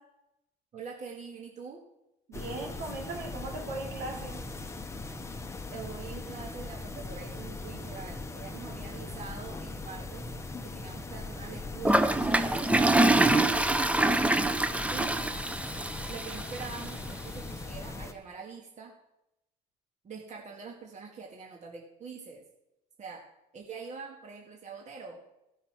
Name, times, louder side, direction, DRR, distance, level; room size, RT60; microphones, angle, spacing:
voice 1, 0.7-1.8 5.7-10.2 10.6-14.0 14.9-15.2 16.1-18.9 20.0-22.4 23.0-23.2 23.5-25.2, right 5 dB, 45° right, 0 dB, 1.9 m, -44 dB
sound 1, 2.3-18.1, left 3 dB, 15° left, 0.9 m, -40 dB
voice 2, 2.3-4.4, right 2 dB, 85° right, -2 dB, 4.0 m, -38 dB
Toilet flush, 11.8-16.9, right 2 dB, 10° right, 0.6 m, -25 dB
15.0 x 5.6 x 6.0 m, 0.88 s
cardioid pair, 110°, 17 cm